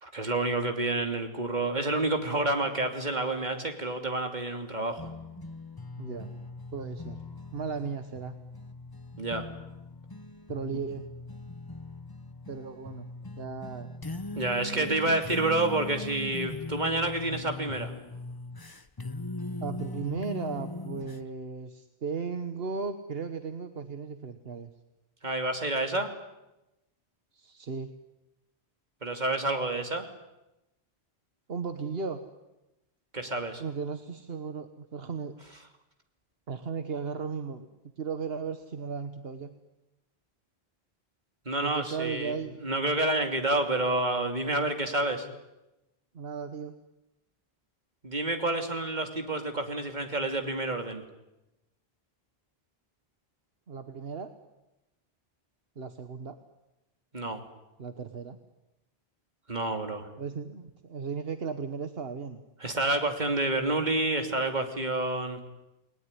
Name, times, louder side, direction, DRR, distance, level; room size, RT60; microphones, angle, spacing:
voice 1, 0.0-5.1 9.2-9.5 14.3-17.9 25.2-26.1 29.0-30.1 33.1-33.6 41.5-45.3 48.0-51.0 57.1-57.4 59.5-60.1 62.6-65.4, right 2 dB, 45° right, 5 dB, 3.0 m, -29 dB
The Doo Doo Song, 5.0-21.2, left 2 dB, 20° left, 1.0 m, -40 dB
voice 2, 6.0-6.3 6.7-7.2 7.5-8.4 10.5-11.1 12.5-13.0 13.4-13.9 14.6-15.4 19.6-24.7 27.3-27.9 31.5-32.2 33.6-35.3 36.5-37.7 38.0-39.5 41.6-42.6 46.1-46.7 53.7-54.3 55.8-56.4 57.8-58.4 60.2-62.4, right 5 dB, 65° right, 8 dB, 1.5 m, -36 dB
29.5 x 20.5 x 9.9 m, 0.98 s
omnidirectional pair, 1.1 m